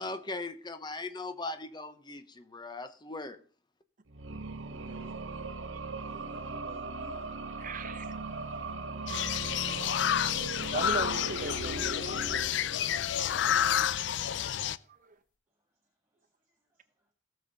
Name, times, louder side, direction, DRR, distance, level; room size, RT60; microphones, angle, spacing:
voice 1, 0.0-3.4, left 2 dB, 25° left, 0.9 m, -39 dB
sound 1, 4.1-13.2, right 3 dB, 80° right, 1.0 m, -39 dB
voice 2, 4.6-5.6 6.0-7.5 12.8-14.2 15.7-17.1, left 1 dB, 15° right, 1.9 m, -57 dB
sound 2, 7.2-7.3 7.8-7.9 8.2-8.7 9.3-9.4 9.8-14.7 15.3-15.4, left 3 dB, 45° left, 2.0 m, -60 dB
voice 3, 7.6-8.1 10.7-11.9 12.2-12.6 14.4-14.5 14.9-15.1, right 4 dB, 45° right, 0.9 m, -39 dB
sound 3, 9.1-14.8, left 10 dB, 65° left, 0.4 m, -30 dB
17.5 x 7.1 x 4.0 m
head